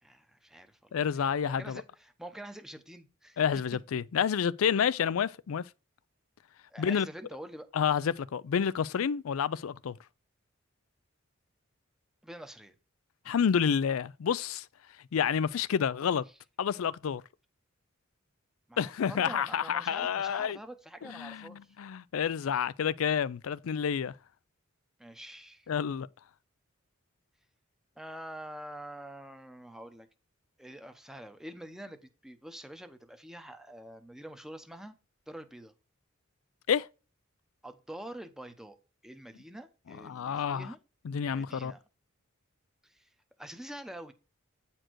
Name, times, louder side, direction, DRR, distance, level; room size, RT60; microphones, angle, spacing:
voice 1, 0.0-3.4 6.7-7.7 12.2-12.7 18.7-21.7 25.0-25.7 28.0-30.1 30.6-35.0 35.3-35.7 37.6-38.8 39.0-40.8 41.3-41.8 42.8-43.1 43.4-44.1, right 1 dB, ahead, 0.8 m, -46 dB
voice 2, 0.9-1.8 3.4-5.6 6.8-7.1 7.7-10.0 13.3-14.7 15.1-16.2 16.6-17.2 18.8-20.6 21.1-24.1 25.7-26.1 36.7-36.9 40.0-40.7 41.0-41.7, left 7 dB, 90° left, 0.4 m, -29 dB
9.0 x 4.4 x 4.6 m
head